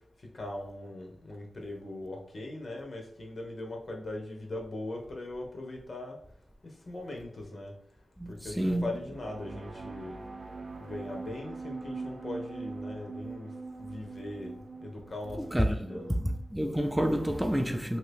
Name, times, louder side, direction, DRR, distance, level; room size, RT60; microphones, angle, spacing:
voice 1, 0.3-6.2 6.9-7.7 8.4-10.2 10.8-13.5 13.8-16.2, left 1 dB, 55° left, 0.8 m, -40 dB
voice 2, 8.2-8.9 15.3-16.2 16.5-18.0, equal, 5° right, 0.3 m, -29 dB
sound 1, 9.1-16.6, right 3 dB, 65° right, 0.5 m, -42 dB
2.8 x 2.7 x 3.3 m
wide cardioid pair, 80°, 0 cm